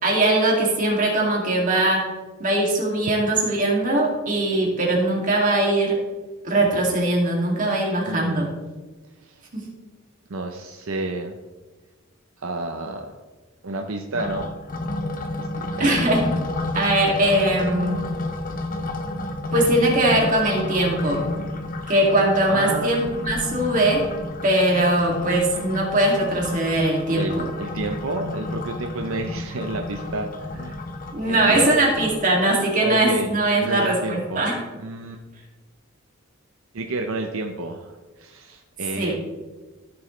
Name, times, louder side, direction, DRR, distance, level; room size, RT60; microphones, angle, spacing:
voice 1, 0.0-2.1 2.4-6.0 6.4-8.5 9.5-9.7 15.8-16.3 16.7-18.0 19.5-21.3 21.9-24.1 24.4-27.5 31.1-34.6 39.0-39.1, right 1 dB, 40° right, -2 dB, 2.5 m, -21 dB
voice 2, 7.6-8.5 9.2-9.5 10.3-11.4 12.4-13.1 13.6-14.6 15.2-16.1 22.5-23.1 27.1-30.8 31.3-31.7 32.8-33.3 33.6-34.4 34.8-35.2 36.7-39.1, right 2 dB, 75° right, 4 dB, 0.8 m, -30 dB
sound 1, 14.1-32.3, left 2 dB, 40° left, 0.9 m, -31 dB
15.0 x 7.0 x 3.3 m, 1.2 s
head